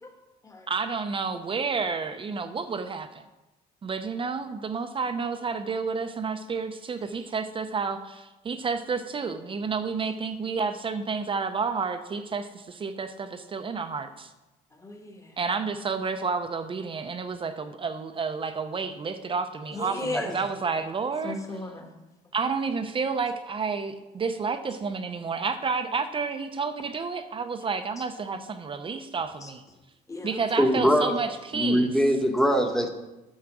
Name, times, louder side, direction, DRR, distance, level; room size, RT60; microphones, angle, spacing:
voice 1, 0.7-3.2 3.8-14.3 15.4-21.4 22.3-29.6 30.2-31.9, right 5 dB, 30° right, 8 dB, 0.7 m, -30 dB
voice 2, 14.7-15.4 19.7-20.5 21.2-21.9 28.0-28.1 29.4-29.5 30.1-30.4, left 2 dB, 20° left, 3 dB, 1.4 m, -36 dB
voice 3, 30.6-31.1 31.5-32.9, equal, 5° left, 5 dB, 1.1 m, -22 dB
8.6 x 6.4 x 6.1 m, 1.0 s
cardioid pair, 110°, 17 cm